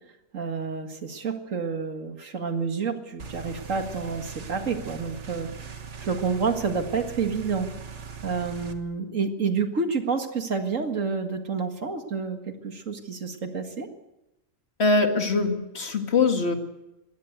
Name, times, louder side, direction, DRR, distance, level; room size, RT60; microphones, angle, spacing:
voice 1, 0.3-5.5 6.0-7.7 8.2-13.9, right 5 dB, 90° right, 6 dB, 2.3 m, -29 dB
sound 1, 3.2-8.7, right 6 dB, 65° right, 1.8 m, -40 dB
voice 2, 14.8-16.5, left 3 dB, 55° left, 5 dB, 2.4 m, -22 dB
20.5 x 16.5 x 8.1 m, 0.97 s
omnidirectional pair, 1.3 m